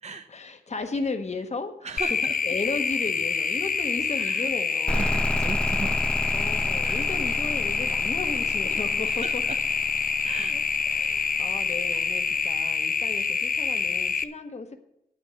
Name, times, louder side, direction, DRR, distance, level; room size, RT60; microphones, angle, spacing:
voice 1, 0.3-1.9 2.4-5.3 6.3-9.4 10.9-14.8, left 3 dB, 50° left, 7 dB, 1.0 m, -35 dB
voice 2, 1.8-2.3 4.2-4.5 4.9-6.0 6.8-7.1 9.1-9.6 10.2-10.6, right 4 dB, 50° right, 6 dB, 0.7 m, -37 dB
sound 1, 2.0-14.2, left 5 dB, 70° left, 0.6 m, -26 dB
sound 2, 4.9-12.4, left 1 dB, 5° left, 0.3 m, -32 dB
9.7 x 6.0 x 8.0 m, 0.81 s
wide cardioid pair, 80°, 15 cm